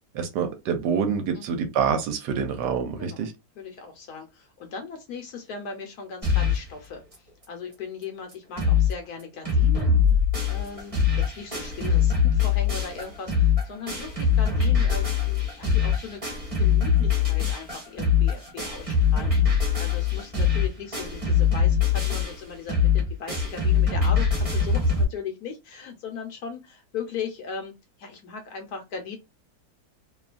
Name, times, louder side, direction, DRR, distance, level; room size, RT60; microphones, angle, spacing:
voice 1, 0.1-3.3, right 6 dB, 75° right, 1.2 m, -26 dB
voice 2, 3.6-10.0 10.5-27.7 28.0-29.2, left 5 dB, 65° left, 1.1 m, -38 dB
sound 1, 6.2-6.7 7.1-7.2 7.4-7.5 8.0-8.1 8.3-8.9 9.2-25.0, left 6 dB, 20° right, 1.1 m, -22 dB
2.9 x 2.3 x 2.4 m
omnidirectional pair, 2.0 m